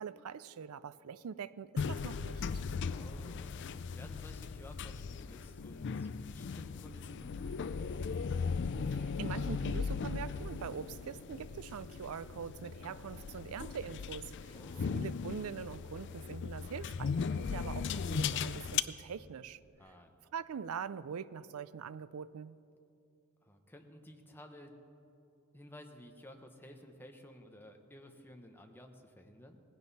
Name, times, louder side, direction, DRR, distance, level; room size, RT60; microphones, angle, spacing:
voice 1, 0.0-2.5 8.8-14.6 14.9-19.6 19.9-20.0 20.3-22.6, right 7 dB, 75° right, 17 dB, 0.4 m, -43 dB
sound 1, 1.8-18.8, left 5 dB, 55° left, 0.4 m, -38 dB
voice 2, 2.8-8.1 14.5-15.2 19.8-20.1 23.4-24.8 25.5-29.6, left 1 dB, 10° left, 3 dB, 1.0 m, -54 dB
18.5 x 16.0 x 4.1 m, 2.7 s
head